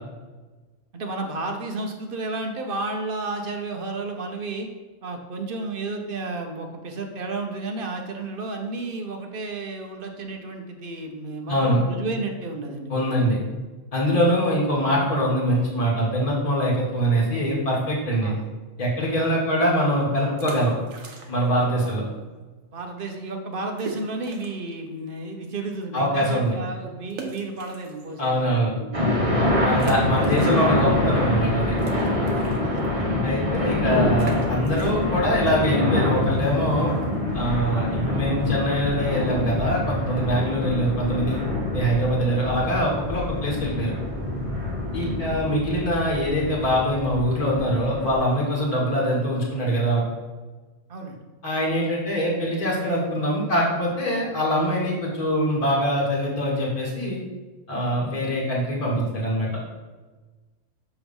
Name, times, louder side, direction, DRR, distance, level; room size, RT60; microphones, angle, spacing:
voice 1, 0.9-4.7 5.0-13.3 18.2-18.4 19.2-19.4 21.8-22.0 22.7-28.9 30.0-30.1 32.6-33.1 33.9-34.0 34.8-35.0 45.0-45.2 50.9-51.2, right 3 dB, 50° right, 3 dB, 0.9 m, -32 dB
voice 2, 11.5-11.8 12.9-13.4 13.9-18.3 18.8-20.7 21.3-22.0 25.9-26.6 28.2-28.7 29.6-31.8 33.2-36.9 37.3-41.5 41.7-43.9 44.9-50.0 51.4-57.2 57.7-59.6, equal, 30° left, -3 dB, 1.4 m, -23 dB
sound 1, 20.4-21.6 21.9-22.0 22.6-22.7 23.0-23.1 23.8-24.7 25.2-25.3 27.1-28.4 28.9-29.0 29.7-30.9 31.2-36.7, right 4 dB, 80° right, 1.3 m, -40 dB
sound 2, 28.9-48.1, left 1 dB, 25° right, 1.2 m, -26 dB
6.9 x 3.0 x 5.3 m, 1.3 s
omnidirectional pair, 1.4 m